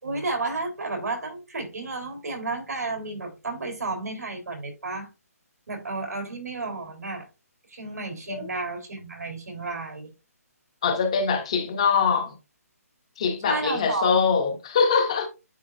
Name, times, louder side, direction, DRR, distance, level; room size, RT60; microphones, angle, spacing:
voice 1, 0.0-5.1 5.7-7.3 7.7-10.1 13.4-14.1, right 3 dB, 90° right, 3.6 m, -32 dB
voice 2, 10.8-12.4 13.2-15.3, left 5 dB, 20° left, 0.7 m, -23 dB
9.4 x 4.2 x 2.6 m
hypercardioid pair, 175°, 9 cm